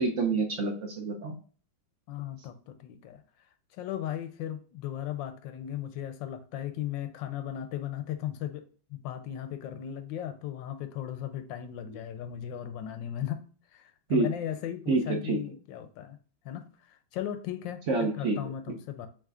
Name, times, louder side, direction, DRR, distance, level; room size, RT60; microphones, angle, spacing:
voice 1, 0.0-1.3 14.1-14.3 14.9-15.4 17.9-18.4, right 3 dB, 60° right, 0.8 m, -27 dB
voice 2, 2.1-3.2 3.7-8.6 8.9-13.4 13.7-16.2 16.4-19.1, left 11 dB, 90° left, 1.3 m, -37 dB
7.4 x 2.9 x 2.4 m
omnidirectional pair, 2.0 m